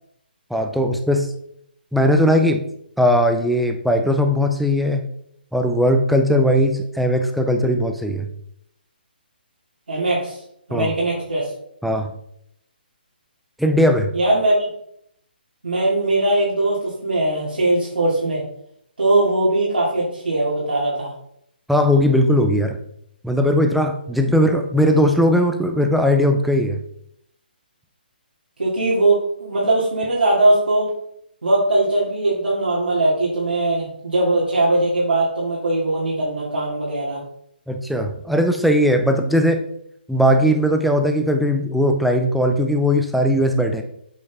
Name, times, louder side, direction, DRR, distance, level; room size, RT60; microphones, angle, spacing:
voice 1, 0.5-1.3 1.9-2.6 3.0-5.0 5.5-8.3 10.7-10.9 11.8-12.1 13.6-14.1 21.7-22.8 23.2-26.8 37.7-39.6 40.1-43.8, equal, ahead, 5 dB, 0.5 m, -18 dB
voice 2, 9.9-10.4 10.7-11.5 14.1-14.5 15.6-18.4 19.0-21.1 28.6-30.9 31.4-37.2, right 2 dB, 90° right, -7 dB, 2.4 m, -20 dB
8.1 x 4.5 x 3.6 m, 0.73 s
hypercardioid pair, 150°, 6 cm